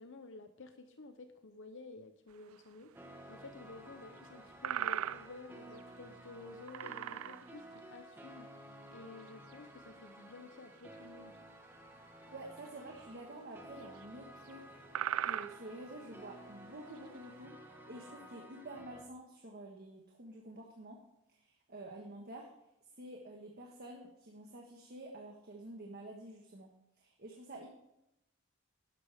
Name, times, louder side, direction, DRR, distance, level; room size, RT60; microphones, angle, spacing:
voice 1, 0.0-2.9 3.3-8.5 8.9-11.4, left 3 dB, 65° left, 8 dB, 0.8 m, -52 dB
sound 1, 2.5-2.6 4.2-4.3 4.6-5.4 5.8-5.9 6.7-7.6 8.7-8.8 9.2-9.6 10.8-10.9 12.5-12.7 13.0-13.1 13.8-14.0 14.5-14.6 14.9-15.7 16.8-17.0, right 10 dB, 75° right, 0.4 m, -38 dB
sound 2, 2.9-19.0, right 1 dB, 10° right, 1.4 m, -54 dB
voice 2, 12.3-14.8 15.2-21.0 21.3-22.5 23.0-26.7 27.0-27.7, right 1 dB, 50° right, 1 dB, 1.5 m, -49 dB
11.5 x 11.5 x 3.6 m, 0.85 s
head